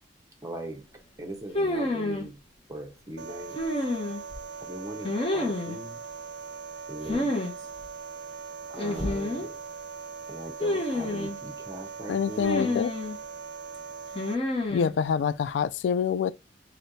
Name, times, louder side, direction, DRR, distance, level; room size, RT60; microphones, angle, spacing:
voice 1, 0.4-0.8 1.2-2.4 2.7-3.6 4.6-6.0 6.9-7.7 8.7-9.5 10.3-12.8, right 1 dB, 20° right, 1.0 m, -40 dB
sound 1, 1.5-2.3 3.6-4.4 5.0-5.8 7.1-7.5 7.8-7.9 8.8-9.5 10.6-11.4 12.4-13.2 14.2-14.9, left 1 dB, 35° left, 0.9 m, -29 dB
sound 2, 3.2-14.3, right 5 dB, 65° right, 0.5 m, -41 dB
voice 2, 12.1-12.9 14.7-16.3, left 7 dB, 90° left, 0.3 m, -26 dB
3.2 x 2.9 x 4.0 m
head